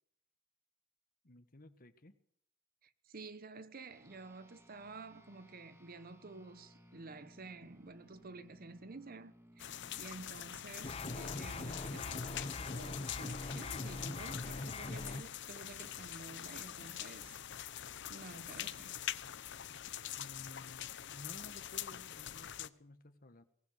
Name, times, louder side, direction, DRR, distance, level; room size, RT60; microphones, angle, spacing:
voice 1, 1.2-2.1 20.2-23.4, left 1 dB, 45° left, 1.6 m, -55 dB
voice 2, 2.8-17.4 18.1-19.0, right 3 dB, 50° right, 1.0 m, -51 dB
sound 1, 3.9-13.6, equal, 15° right, 2.2 m, -62 dB
sound 2, 9.6-22.7, left 11 dB, 60° left, 0.9 m, -44 dB
sound 3, 10.8-15.2, left 2 dB, 30° left, 0.9 m, -42 dB
22.5 x 19.0 x 6.8 m
head